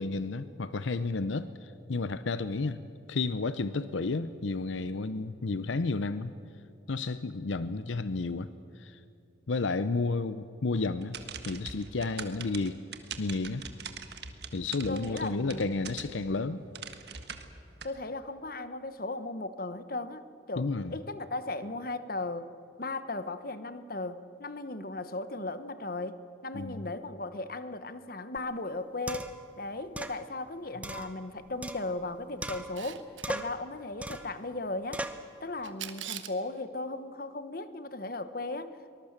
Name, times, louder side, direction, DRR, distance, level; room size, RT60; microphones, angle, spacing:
voice 1, 0.0-2.8 3.1-6.3 6.9-8.5 8.8-9.0 9.5-11.2 11.4-12.8 13.2-13.6 14.5-16.6 20.6-21.0 26.5-26.9, left 3 dB, 80° left, 13 dB, 0.7 m, -31 dB
sound 1, 11.0-16.3 16.7-17.9, right 6 dB, 60° right, 1.6 m, -42 dB
voice 2, 14.9-16.0 17.8-22.5 22.8-29.3 29.6-35.0 35.4-38.9, left 2 dB, 50° left, 12 dB, 1.1 m, -37 dB
sound 2, 28.4-28.5 29.1-29.5 30.0-30.2 30.8-32.1 32.4-32.9 33.2-33.6 34.0-34.4 34.9-35.3, right 1 dB, 5° right, 0.8 m, -38 dB
Camera, 32.6-33.3 35.6-36.4, right 11 dB, 85° right, 1.3 m, -41 dB
23.5 x 20.5 x 7.3 m, 2.8 s
head